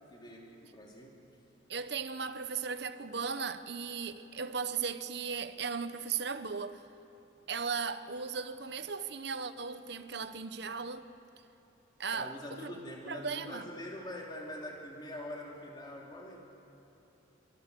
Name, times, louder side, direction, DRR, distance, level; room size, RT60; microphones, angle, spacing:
voice 1, 0.1-1.2 12.1-16.4, left 1 dB, 20° left, 3.3 m, -44 dB
voice 2, 1.7-6.8 7.5-11.1 12.0-12.7 13.1-13.6, right 5 dB, 55° right, 0.9 m, -37 dB
29.0 x 23.0 x 6.8 m
head